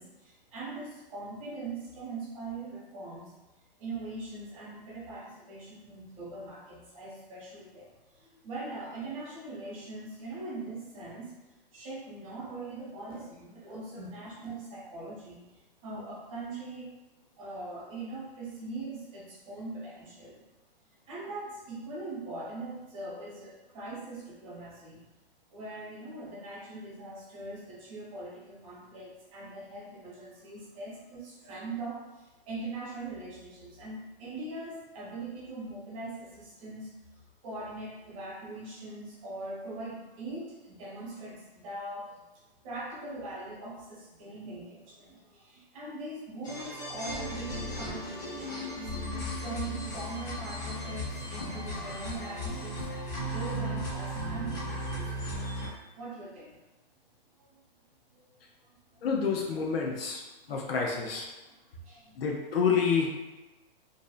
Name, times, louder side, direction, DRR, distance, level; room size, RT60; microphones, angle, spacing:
voice 1, 0.0-3.3 3.8-11.3 11.7-15.4 15.8-16.9 17.4-20.4 21.1-25.0 25.5-36.9 37.4-42.3 42.6-52.9 53.2-55.7 55.9-56.6 57.4-57.6 58.1-58.3 58.9-59.0 60.4-60.5 61.4-62.2, right 2 dB, 35° right, -5 dB, 0.8 m, -41 dB
sound 1, 46.4-55.7, equal, 20° left, 0.4 m, -36 dB
voice 2, 59.0-60.2 60.5-61.3 62.2-63.1, left 6 dB, 80° left, -1 dB, 0.5 m, -28 dB
2.6 x 2.0 x 2.3 m, 1.1 s
hypercardioid pair, 155°, 29 cm